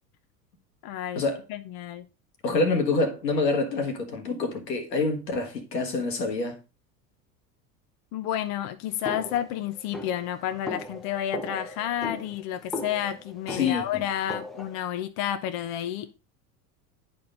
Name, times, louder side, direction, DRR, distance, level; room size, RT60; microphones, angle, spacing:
voice 1, 0.8-1.2 1.5-2.1 8.1-16.1, left 11 dB, 45° left, 0.8 m, -30 dB
voice 2, 2.4-6.6 13.5-14.0, left 3 dB, 85° left, 1.4 m, -26 dB
sound 1, 9.0-14.8, left 1 dB, ahead, 0.9 m, -38 dB
9.7 x 4.5 x 3.7 m
hypercardioid pair, 80°, 49 cm